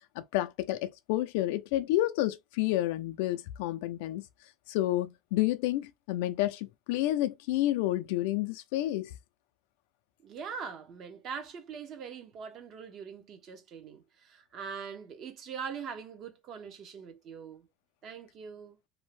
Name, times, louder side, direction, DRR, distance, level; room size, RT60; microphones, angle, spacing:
voice 1, 0.2-4.2 4.7-9.1, left 15 dB, 80° left, 0.3 m, -30 dB
voice 2, 10.2-17.7 18.0-18.8, right 6 dB, 35° right, 0.6 m, -42 dB
2.6 x 2.1 x 3.0 m
cardioid pair, 175°, 0 cm